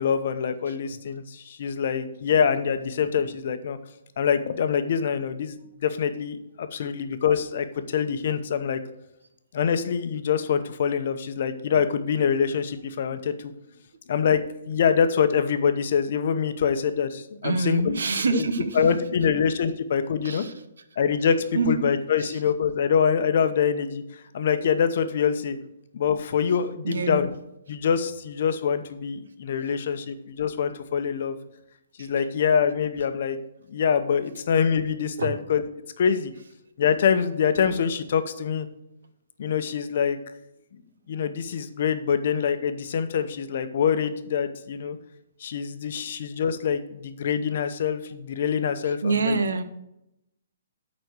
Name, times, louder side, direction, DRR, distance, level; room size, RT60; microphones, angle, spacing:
voice 1, 0.0-3.8 4.2-8.8 9.5-13.5 14.1-14.4 14.7-18.0 18.3-18.4 18.8-20.4 21.0-24.0 24.3-25.6 25.9-27.3 27.7-31.4 32.0-33.4 33.7-35.6 36.0-36.3 36.8-38.7 39.4-40.2 41.1-45.0 45.4-49.4, left 7 dB, 50° left, 10 dB, 0.8 m, -25 dB
voice 2, 17.4-18.9 19.3-19.4 20.2-20.5 21.5-21.7 22.2-22.4 26.8-27.3 32.0-32.3 35.2-35.3 45.9-46.0 48.8-49.6, right 3 dB, 85° right, 10 dB, 1.0 m, -26 dB
9.2 x 4.2 x 6.5 m, 0.83 s
hypercardioid pair, 165°, 0 cm